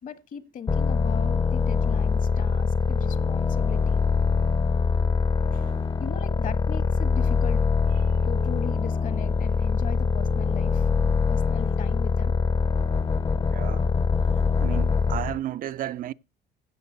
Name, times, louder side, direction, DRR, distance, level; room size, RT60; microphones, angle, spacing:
voice 1, 0.0-4.0 5.4-5.6 6.0-7.6 8.2-10.9 11.3-12.3, left 7 dB, 50° left, 1.5 m, -38 dB
sound 1, 0.7-15.4, left 5 dB, 25° left, 0.7 m, -23 dB
voice 2, 13.5-13.8 14.6-16.1, right 12 dB, 55° right, 0.5 m, -33 dB
16.5 x 6.5 x 4.0 m
cardioid pair, 110°, 17 cm